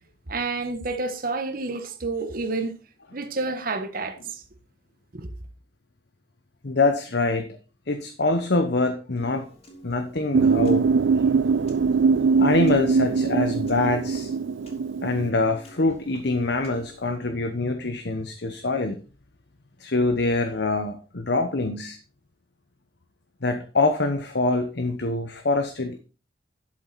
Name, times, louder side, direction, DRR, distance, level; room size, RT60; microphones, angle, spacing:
voice 1, 0.3-2.7 3.1-4.4 5.1-5.3, right 3 dB, 50° right, 1.3 m, -29 dB
voice 2, 6.6-7.6 7.9-9.5 9.8-10.9 12.4-14.3 15.0-19.0 19.8-22.0 23.4-26.0, left 2 dB, 60° left, 1.0 m, -24 dB
Piano, 9.2-17.2, right 1 dB, 35° left, 3.2 m, -48 dB
sound 1, 10.3-15.3, right 5 dB, 85° right, 0.4 m, -22 dB
11.5 x 7.7 x 4.2 m
head